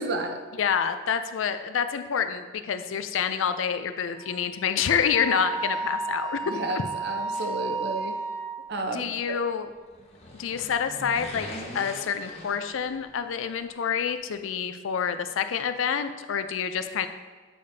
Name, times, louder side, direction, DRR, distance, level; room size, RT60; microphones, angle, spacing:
voice 1, 0.0-0.4 6.4-8.1 8.7-9.1, right 2 dB, 55° right, 4 dB, 0.7 m, -31 dB
voice 2, 0.6-6.8 8.8-9.7 10.4-17.1, left 7 dB, 85° left, 10 dB, 0.4 m, -28 dB
Wind instrument woodwind instrument, 4.2-8.5, right 4 dB, 5° left, 0.7 m, -33 dB
sound 1, 9.8-13.3 13.5-13.6, left 1 dB, 30° left, 0.9 m, -41 dB
8.5 x 5.0 x 2.7 m, 1.5 s
head